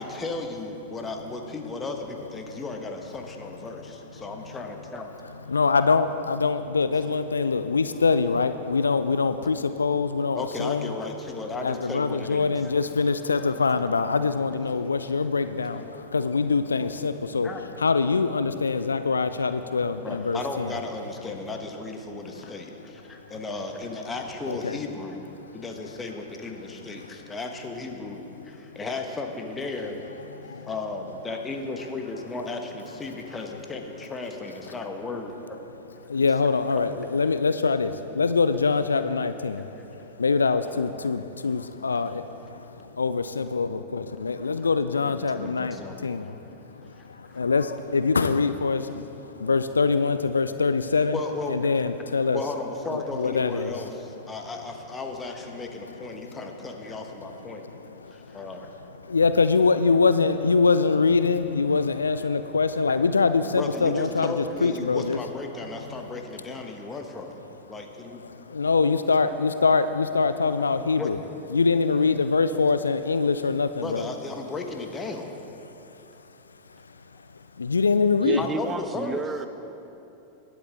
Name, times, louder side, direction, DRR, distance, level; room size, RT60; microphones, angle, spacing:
voice 1, 0.0-5.1 6.9-7.1 10.3-12.7 17.4-17.6 20.0-25.3 25.5-30.0 30.6-35.6 36.1-36.3 36.7-36.8 44.6-44.7 45.0-46.1 46.9-47.4 51.1-51.6 52.3-57.7 58.1-58.7 63.5-67.4 67.7-68.2 71.0-71.2 73.8-75.4 78.4-79.2, left 3 dB, 15° left, 4 dB, 1.2 m, -35 dB
voice 2, 5.5-10.9 11.6-17.5 17.8-20.7 24.5-24.8 30.4-30.7 36.1-39.7 40.2-42.3 42.5-42.6 43.0-46.3 47.1-51.2 51.5-52.4 53.2-53.7 58.1-58.4 59.1-65.2 68.5-71.2 71.5-74.0 77.6-78.4, left 4 dB, 75° left, 11 dB, 0.3 m, -24 dB
voice 3, 78.2-79.5, right 5 dB, 20° right, 10 dB, 0.4 m, -31 dB
20.0 x 8.1 x 3.6 m, 3.0 s
figure-of-eight pair, 90°, 0 cm